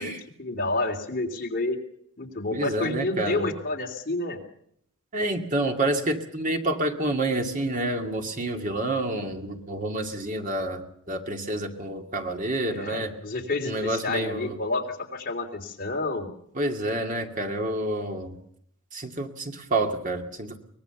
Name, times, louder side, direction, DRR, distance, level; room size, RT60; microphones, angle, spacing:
voice 1, 0.4-1.8 2.2-4.4 12.7-16.3, left 2 dB, 45° left, 2 dB, 3.2 m, -29 dB
voice 2, 2.5-3.5 5.1-13.1 13.6-14.6 16.6-18.4 18.9-20.6, right 1 dB, 40° right, 4 dB, 2.2 m, -28 dB
23.5 x 19.5 x 6.9 m, 0.69 s
head